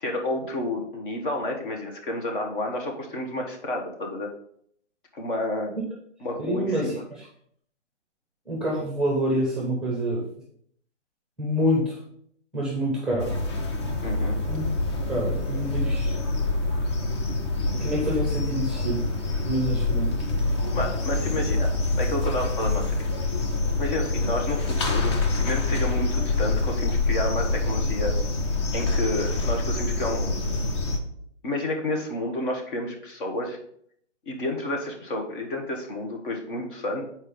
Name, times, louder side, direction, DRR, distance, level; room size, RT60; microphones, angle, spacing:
voice 1, 0.0-4.3 5.1-5.7 6.2-7.0 14.0-14.4 20.7-21.7 22.0-22.8 23.8-28.2 28.7-30.5 31.4-33.6 34.3-37.0, left 1 dB, 45° left, 1 dB, 1.3 m, -30 dB
voice 2, 6.4-7.0 8.5-10.3 11.4-12.0 12.5-13.4 14.5-14.7 15.1-16.2 17.8-19.0 19.4-20.1, equal, ahead, -2 dB, 0.9 m, -26 dB
sound 1, 13.2-31.0, left 2 dB, 25° left, 0.5 m, -26 dB
6.6 x 4.5 x 3.7 m, 0.67 s
hypercardioid pair, 145°, 36 cm